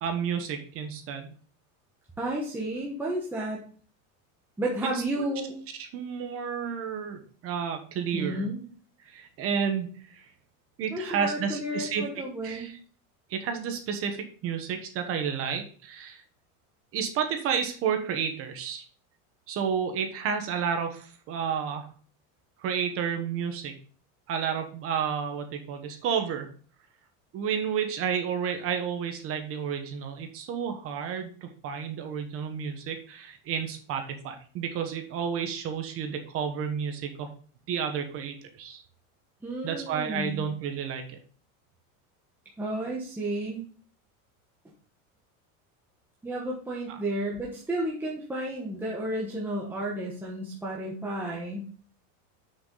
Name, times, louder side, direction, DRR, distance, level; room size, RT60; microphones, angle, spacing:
voice 1, 0.0-1.3 5.2-5.3 5.8-8.4 9.0-10.2 10.8-12.0 12.4-12.8 13.3-16.2 16.9-18.8 19.5-21.9 22.6-23.7 24.3-26.5 27.3-37.3 37.7-38.8 39.6-41.2 46.9-47.0, right 7 dB, 35° right, 6 dB, 1.2 m, -31 dB
voice 2, 2.2-3.6 4.6-5.5 8.1-8.6 10.9-12.7 39.4-40.4 42.6-43.6 46.2-51.7, right 1 dB, 5° right, -4 dB, 1.1 m, -32 dB
8.0 x 6.5 x 3.9 m, 0.43 s
supercardioid pair, 165°, 40 cm